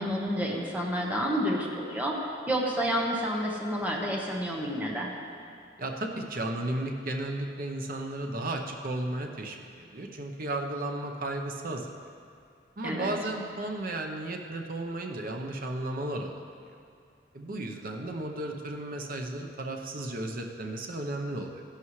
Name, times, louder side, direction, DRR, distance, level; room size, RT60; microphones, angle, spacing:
voice 1, 0.0-2.1 2.5-5.1 12.8-13.1, equal, 10° right, -2 dB, 1.2 m, -29 dB
voice 2, 5.8-11.9 12.8-16.4 17.3-21.6, right 1 dB, 50° right, 2 dB, 0.9 m, -34 dB
15.0 x 11.5 x 3.2 m, 2.4 s
head